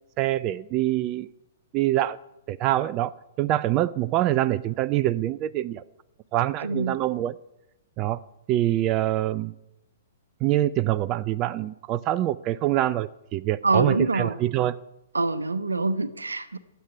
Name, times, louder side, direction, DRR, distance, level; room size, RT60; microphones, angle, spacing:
voice 1, 0.2-1.3 1.7-2.2 2.5-5.8 6.3-7.3 8.0-8.2 8.5-9.5 10.4-14.8, right 14 dB, 35° right, 15 dB, 0.5 m, -25 dB
voice 2, 6.6-7.0 13.6-14.4 15.1-16.6, right 3 dB, 85° right, 13 dB, 1.0 m, -25 dB
12.5 x 8.2 x 10.0 m, 0.88 s
figure-of-eight pair, 115°, 0 cm